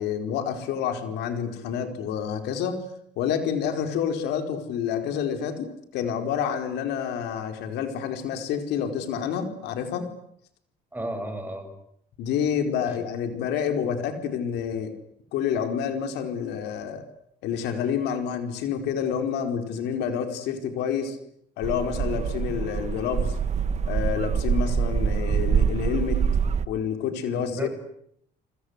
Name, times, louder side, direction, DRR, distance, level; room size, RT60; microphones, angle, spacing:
voice 1, 0.0-2.8 3.2-10.1 12.2-14.9 15.3-17.1 17.4-21.2 21.6-23.4 23.8-26.3 26.7-27.7, left 8 dB, 85° left, 7 dB, 4.7 m, -28 dB
voice 2, 10.9-11.7 12.9-13.0 27.3-27.7, right 1 dB, 10° right, 6 dB, 7.1 m, -33 dB
sound 1, 21.6-26.7, right 7 dB, 40° right, 1.3 m, -25 dB
28.5 x 25.5 x 8.3 m, 0.72 s
cardioid pair, 110°, 17 cm